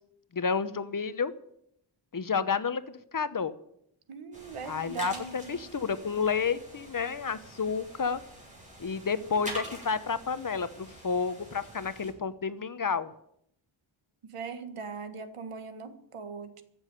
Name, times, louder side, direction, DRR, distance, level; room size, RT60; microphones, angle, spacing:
voice 1, 0.3-1.3 2.1-3.5 4.6-8.2 8.8-13.1, left 5 dB, 40° left, 14 dB, 1.0 m, -30 dB
voice 2, 4.1-5.6 14.2-16.6, right 5 dB, 90° right, 9 dB, 1.7 m, -40 dB
sound 1, 4.3-12.1, right 1 dB, 15° right, 7.3 m, -45 dB
15.0 x 7.3 x 9.9 m, 0.73 s
wide cardioid pair, 95°, 50 cm